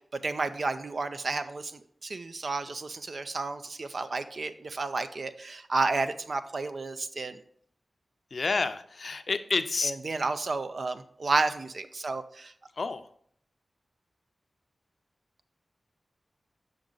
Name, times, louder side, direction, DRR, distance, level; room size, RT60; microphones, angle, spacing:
voice 1, 0.1-7.4 9.8-12.5, right 3 dB, 65° right, 10 dB, 0.5 m, -31 dB
voice 2, 8.3-9.9 12.8-13.0, left 4 dB, 65° left, 10 dB, 0.5 m, -29 dB
7.4 x 5.2 x 3.9 m, 0.63 s
cardioid pair, 50°, 0 cm